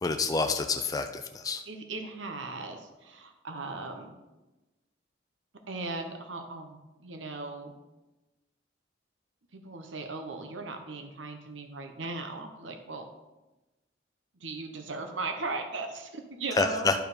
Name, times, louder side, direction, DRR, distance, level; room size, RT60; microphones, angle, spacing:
voice 1, 0.0-1.6 16.6-17.0, left 3 dB, 20° left, 6 dB, 0.4 m, -28 dB
voice 2, 1.7-4.1 5.7-7.7 9.5-13.1 14.4-17.0, right 3 dB, 80° right, 5 dB, 1.0 m, -38 dB
11.5 x 4.7 x 5.1 m, 1.1 s
head